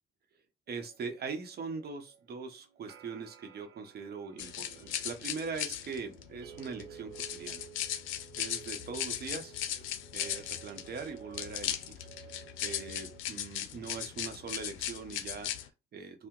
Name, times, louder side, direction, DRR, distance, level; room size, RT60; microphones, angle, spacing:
voice 1, 0.7-7.7 8.4-9.5 10.1-12.0 12.3-16.3, right 5 dB, 55° right, 6 dB, 0.8 m, -41 dB
sound 1, 0.7-13.2, right 10 dB, 75° right, 0.5 m, -54 dB
sound 2, 4.4-15.7, left 11 dB, 90° left, 0.4 m, -38 dB
2.8 x 2.1 x 3.6 m, 0.28 s
cardioid pair, 90°, 20 cm